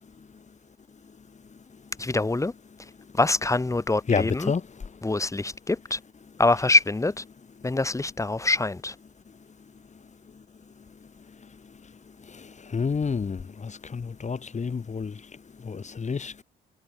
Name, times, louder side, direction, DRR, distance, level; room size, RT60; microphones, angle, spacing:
voice 1, 2.0-2.5 3.2-4.5 5.0-6.0 6.4-7.2 7.6-8.9, left 2 dB, 15° left, 2.1 m, -24 dB
voice 2, 4.1-4.6 12.7-15.1 15.7-16.4, left 5 dB, 35° left, 4.5 m, -28 dB
cardioid pair, 90°, 20 cm